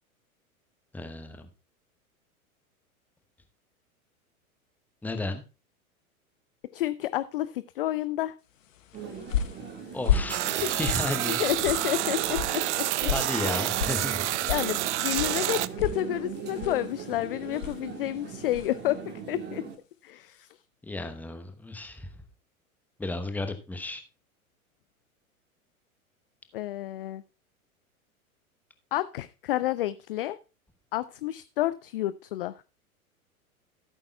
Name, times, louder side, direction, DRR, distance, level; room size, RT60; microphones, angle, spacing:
voice 1, 0.9-1.5 5.0-5.4 9.9-11.4 13.1-14.3 20.8-22.1 23.0-24.0, left 2 dB, 5° left, 8 dB, 0.9 m, -33 dB
voice 2, 6.7-8.3 10.6-10.7 11.3-13.1 13.4-13.6 14.5-19.6 20.0-20.6 26.5-27.2 28.9-30.4 30.9-32.5, left 14 dB, 45° left, 16 dB, 0.4 m, -30 dB
sound 1, 8.8-18.9, left 8 dB, 60° left, 1.1 m, -34 dB
sound 2, 8.9-19.8, right 6 dB, 25° right, 1.9 m, -40 dB
sound 3, 10.3-15.7, right 14 dB, 55° right, 0.5 m, -28 dB
15.5 x 8.7 x 2.3 m, 0.31 s
figure-of-eight pair, 95°, 43 cm